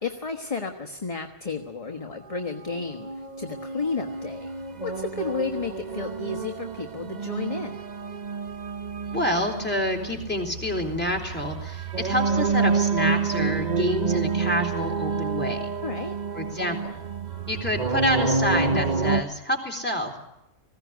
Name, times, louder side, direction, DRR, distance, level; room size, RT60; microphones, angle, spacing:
voice 1, 0.0-4.5 4.8-7.8 15.8-16.2, left 4 dB, 30° left, 3 dB, 1.3 m, -32 dB
sound 1, 2.7-19.2, right 5 dB, 40° right, 1.0 m, -28 dB
voice 2, 9.1-15.7 16.3-16.9 17.5-20.2, left 1 dB, 10° left, 2 dB, 3.9 m, -28 dB
20.0 x 16.5 x 9.4 m, 0.89 s
omnidirectional pair, 1.2 m